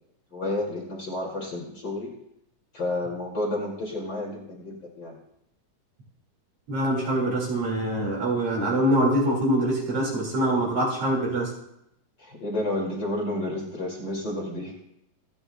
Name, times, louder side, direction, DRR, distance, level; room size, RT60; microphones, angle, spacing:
voice 1, 0.3-2.1 2.7-5.2 12.2-14.7, left 1 dB, 35° left, -2 dB, 2.7 m, -31 dB
voice 2, 6.7-11.5, right 1 dB, 50° right, -2 dB, 3.0 m, -24 dB
26.5 x 9.8 x 2.2 m, 0.80 s
omnidirectional pair, 3.7 m